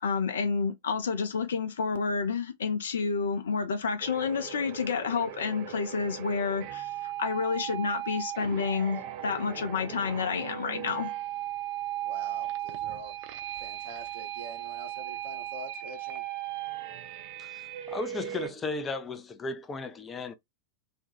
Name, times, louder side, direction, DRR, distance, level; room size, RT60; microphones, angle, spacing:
voice 1, 0.0-11.1, left 5 dB, 65° left, 0.6 m, -29 dB
sound 1, 4.0-18.5, right 12 dB, 45° right, 0.5 m, -37 dB
voice 2, 12.0-13.1 13.5-16.2, right 2 dB, 60° right, 0.9 m, -45 dB
voice 3, 17.4-20.3, left 3 dB, 20° left, 0.4 m, -35 dB
2.6 x 2.3 x 2.5 m
figure-of-eight pair, 90°, 0 cm